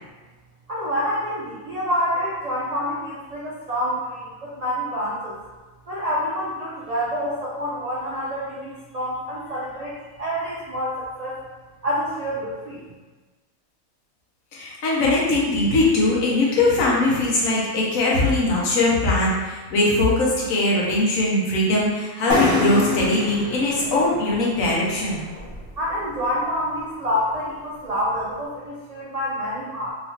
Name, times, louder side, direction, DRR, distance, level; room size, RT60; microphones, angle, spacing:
voice 1, 0.7-5.4 5.9-11.4 11.8-12.8 25.8-29.9, equal, 65° right, -7 dB, 0.4 m, -27 dB
voice 2, 14.5-25.2, left 2 dB, 80° left, -4 dB, 1.2 m, -21 dB
sound 1, 22.3-25.9, left 3 dB, 45° left, 0.9 m, -26 dB
3.0 x 2.9 x 2.8 m, 1.3 s
omnidirectional pair, 1.4 m